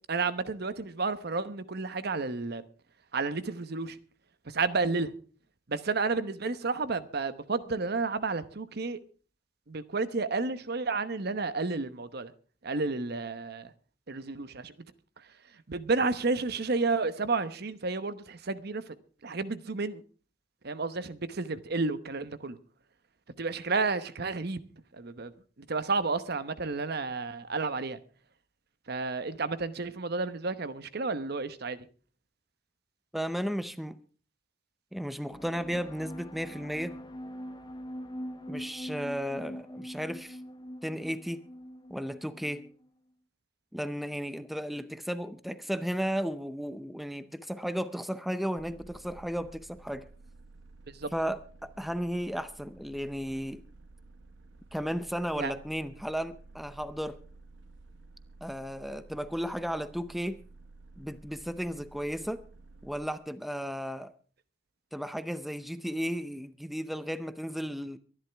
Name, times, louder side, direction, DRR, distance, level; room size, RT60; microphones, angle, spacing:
voice 1, 0.1-2.6 3.1-4.0 4.5-5.1 5.7-9.0 9.7-12.3 12.6-13.7 14.1-14.7 15.7-18.9 19.2-20.0 20.6-22.6 23.4-24.6 24.9-25.3 25.7-28.0 28.9-31.9 50.9-51.1 55.4-55.5, right 3 dB, 60° right, 1.0 m, -31 dB
voice 2, 33.1-34.0 34.9-37.0 38.5-40.4 40.8-41.4 41.9-42.7 43.7-50.1 51.1-53.6 54.7-57.2 58.4-60.4 61.0-62.4 62.8-64.1 64.9-68.0, equal, ahead, 0.6 m, -34 dB
sound 1, 35.3-42.9, equal, 25° left, 1.0 m, -43 dB
sound 2, 48.6-63.1, right 3 dB, 90° right, 1.2 m, -53 dB
23.5 x 11.0 x 3.5 m
head